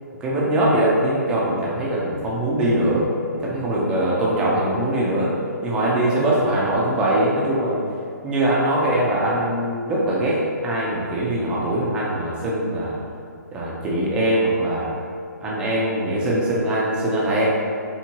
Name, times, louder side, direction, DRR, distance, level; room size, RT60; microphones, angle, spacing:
voice 1, 0.2-5.3 5.6-7.8 8.2-13.0 13.5-15.0 15.4-17.5, right 1 dB, 10° right, -5 dB, 0.5 m, -22 dB
4.4 x 3.5 x 2.9 m, 2.3 s
hypercardioid pair, 160°, 10 cm